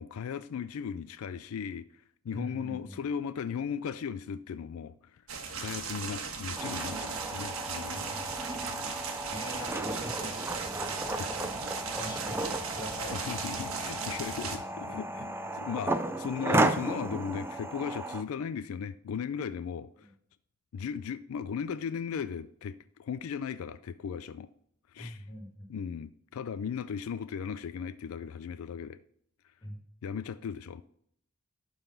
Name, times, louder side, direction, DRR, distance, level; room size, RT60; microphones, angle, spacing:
voice 1, 0.0-5.2 5.6-8.3 8.7-8.9 10.9-11.3 13.1-20.1 20.7-24.5 24.9-25.3 25.7-29.0 30.0-30.8, left 7 dB, 80° left, 0.3 m, -37 dB
voice 2, 2.3-3.0 7.9-8.4 9.3-11.5 12.0-13.2 20.0-20.1 25.0-25.5 29.6-29.8, left 1 dB, 20° left, 2.1 m, -43 dB
sound 1, 5.3-14.6, right 5 dB, 80° right, 1.3 m, -38 dB
sound 2, 6.6-18.2, right 2 dB, 10° right, 0.4 m, -34 dB
11.5 x 4.0 x 5.5 m
head